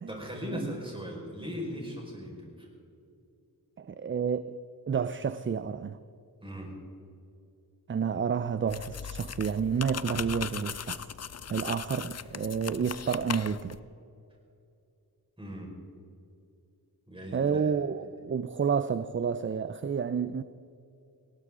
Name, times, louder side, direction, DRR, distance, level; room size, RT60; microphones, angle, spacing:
voice 1, 0.1-2.7 6.4-6.7 15.4-15.7 17.1-17.7, equal, 15° right, -2 dB, 4.9 m, -38 dB
voice 2, 3.8-4.6 4.9-6.0 7.9-11.0 11.5-13.8 17.3-20.4, right 6 dB, 35° right, 13 dB, 0.4 m, -30 dB
sound 1, 8.7-13.8, left 7 dB, 40° left, 0.5 m, -38 dB
19.5 x 18.0 x 3.8 m, 2.6 s
wide cardioid pair, 85°, 38 cm